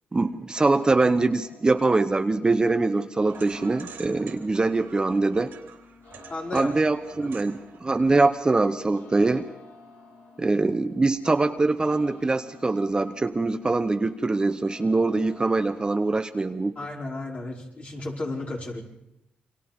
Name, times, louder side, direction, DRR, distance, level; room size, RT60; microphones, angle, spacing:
voice 1, 0.1-5.5 6.5-9.5 10.4-16.7, right 3 dB, 25° right, 8 dB, 0.9 m, -23 dB
sound 1, 0.5-15.7, left 4 dB, 80° left, 3.3 m, -51 dB
sound 2, 3.2-8.9, right 7 dB, 80° right, 3.1 m, -48 dB
voice 2, 6.3-6.7 7.2-7.3 16.8-18.8, left 2 dB, 45° left, -2 dB, 5.3 m, -33 dB
28.5 x 24.5 x 3.7 m, 0.87 s
cardioid pair, 90°, 3 cm